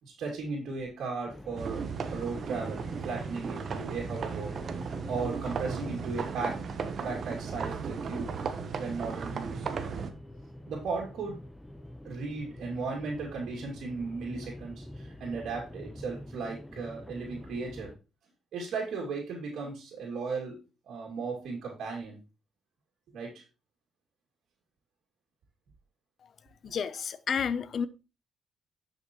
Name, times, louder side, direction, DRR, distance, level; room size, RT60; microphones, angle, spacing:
voice 1, 0.0-4.5 5.1-6.6 7.0-8.3 8.8-9.7 10.7-11.4 12.0-17.9 18.5-20.6 20.9-22.2 23.1-23.4, right 4 dB, 75° right, 2.5 m, -36 dB
sound 1, 1.3-18.0, left 1 dB, 10° left, 1.0 m, -46 dB
sound 2, 1.6-10.1, right 5 dB, 55° right, 1.0 m, -36 dB
voice 2, 26.6-27.9, left 7 dB, 55° left, 0.7 m, -31 dB
10.5 x 6.0 x 3.1 m
cardioid pair, 90°, 0 cm